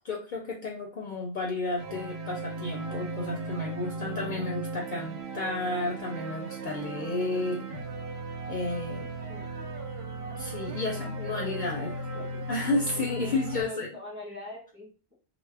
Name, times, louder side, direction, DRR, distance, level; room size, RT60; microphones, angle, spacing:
voice 1, 0.0-7.7 8.5-9.1 10.4-11.9 12.5-13.9, left 2 dB, 60° left, -1 dB, 0.6 m, -32 dB
sound 1, 1.8-13.6, right 2 dB, 80° right, 0.9 m, -36 dB
voice 2, 10.8-11.9 12.1-12.3 12.9-14.9, left 1 dB, 10° right, -4 dB, 0.9 m, -43 dB
2.2 x 2.0 x 3.3 m, 0.36 s
omnidirectional pair, 1.1 m